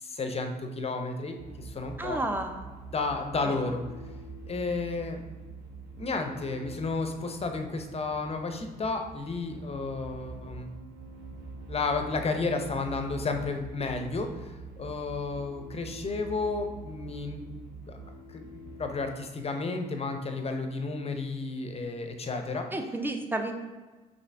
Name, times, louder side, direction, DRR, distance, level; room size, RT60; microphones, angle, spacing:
voice 1, 0.0-2.2 2.9-3.8 4.5-5.2 6.0-10.7 11.7-17.5 17.9-18.0 18.3-18.5 18.8-22.7, left 3 dB, 30° left, 5 dB, 0.7 m, -32 dB
sound 1, 1.4-19.0, right 3 dB, 55° right, 1.0 m, -45 dB
voice 2, 2.0-2.6 3.4-3.7 22.7-23.5, right 1 dB, 10° right, 5 dB, 0.6 m, -31 dB
5.6 x 2.7 x 3.4 m, 1.3 s
hypercardioid pair, 50°, 20 cm